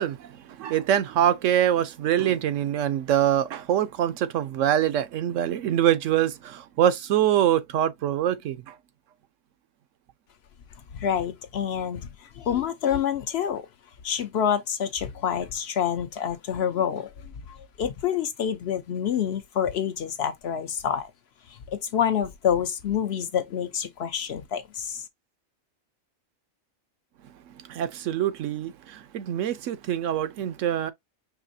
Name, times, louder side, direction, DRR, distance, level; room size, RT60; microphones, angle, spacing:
voice 1, 0.0-8.8 27.7-30.9, right 10 dB, 80° right, 0.9 m, -24 dB
voice 2, 10.9-13.7 14.0-21.1 21.5-25.0, left 8 dB, 65° left, 0.8 m, -27 dB
4.9 x 3.0 x 2.5 m
omnidirectional pair, 1.3 m